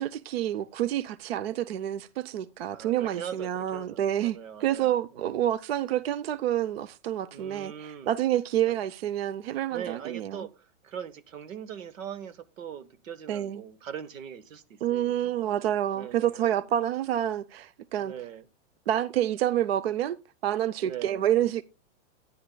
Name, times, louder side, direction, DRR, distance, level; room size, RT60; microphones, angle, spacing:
voice 1, 0.0-10.5 13.3-13.6 14.8-18.1 18.9-20.2 20.4-21.6, right 11 dB, 50° right, 0.6 m, -28 dB
voice 2, 2.7-5.4 7.3-8.1 8.7-8.8 9.7-15.6 15.9-16.6 18.0-18.4 20.8-21.2, right 9 dB, 90° right, 1.3 m, -41 dB
13.5 x 10.0 x 2.2 m
supercardioid pair, 175°, 38 cm